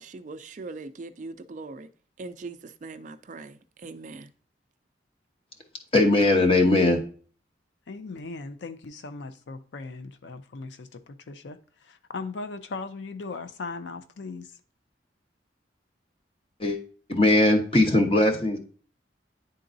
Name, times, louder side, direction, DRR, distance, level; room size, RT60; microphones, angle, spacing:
voice 1, 0.0-1.9 2.2-4.3, right 3 dB, 45° right, 0.4 m, -41 dB
voice 2, 5.9-7.0 16.6-16.8 17.1-18.6, left 2 dB, 30° left, 1.0 m, -20 dB
voice 3, 7.9-14.6, left 3 dB, 80° left, 0.5 m, -38 dB
10.0 x 3.8 x 2.6 m
head